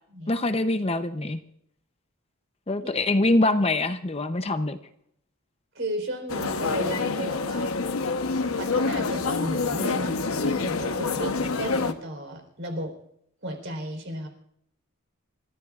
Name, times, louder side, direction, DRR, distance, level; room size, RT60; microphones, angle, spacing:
voice 1, 0.3-1.4 2.7-4.8, left 2 dB, 30° left, 9 dB, 0.7 m, -24 dB
voice 2, 5.7-7.8 8.6-12.9 13.4-14.3, equal, 55° right, 4 dB, 4.1 m, -34 dB
sound 1, 6.3-11.9, left 4 dB, 80° left, 1.0 m, -27 dB
29.5 x 14.0 x 2.5 m, 0.72 s
head